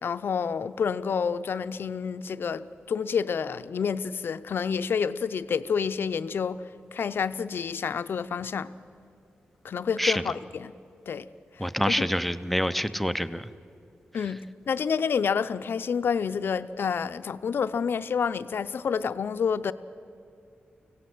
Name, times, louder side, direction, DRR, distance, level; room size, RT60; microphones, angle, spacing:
voice 1, 0.0-6.6 6.9-8.7 9.6-10.7 11.1-11.3 11.6-12.1 14.1-19.7, left 6 dB, 70° left, 0.6 m, -29 dB
voice 2, 11.6-13.5, equal, 5° left, 0.6 m, -26 dB
24.5 x 17.5 x 7.8 m
wide cardioid pair, 115°, 4 cm